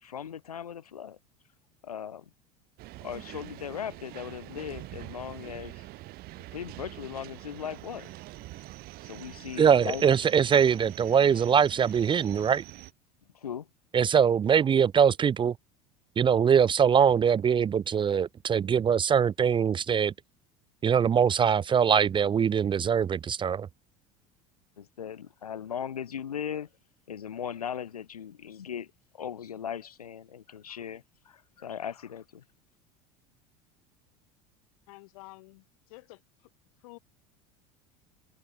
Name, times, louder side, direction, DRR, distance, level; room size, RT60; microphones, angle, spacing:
voice 1, 0.0-1.2 1.8-2.3 3.0-5.9 6.5-8.2 9.0-10.0 13.3-13.7 24.8-26.7 27.1-32.4, left 8 dB, 90° left, 2.1 m, -38 dB
sound 1, 2.8-12.9, right 19 dB, 55° right, 2.0 m, -45 dB
voice 2, 9.6-12.6 13.9-15.5 16.2-20.1 20.8-23.7, right 7 dB, 25° right, 0.6 m, -22 dB
voice 3, 34.9-35.6 35.9-36.2 36.8-37.0, left 22 dB, 70° left, 2.2 m, -49 dB
hypercardioid pair, 80°, 19 cm